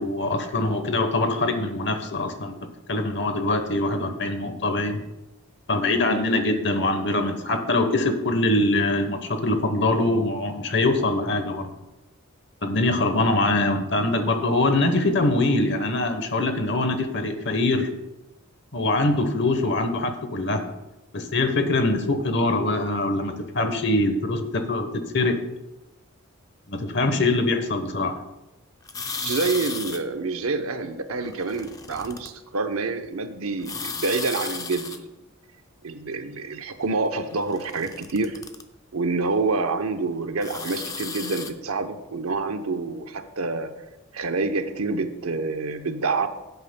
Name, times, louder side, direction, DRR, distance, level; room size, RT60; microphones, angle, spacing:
voice 1, 0.0-2.6 2.9-5.0 5.7-11.7 12.6-17.9 18.7-20.6 21.1-25.4 26.7-28.2, left 2 dB, 55° left, 8 dB, 1.0 m, -23 dB
sound 1, 28.9-30.0 31.2-32.3 33.6-35.0 37.3-38.6 40.4-41.5, left 5 dB, 15° left, 0.4 m, -34 dB
voice 2, 29.2-35.1 35.8-38.4 38.9-43.7 44.1-46.3, right 3 dB, 85° right, 8 dB, 0.8 m, -27 dB
16.0 x 8.1 x 2.2 m, 1.0 s
head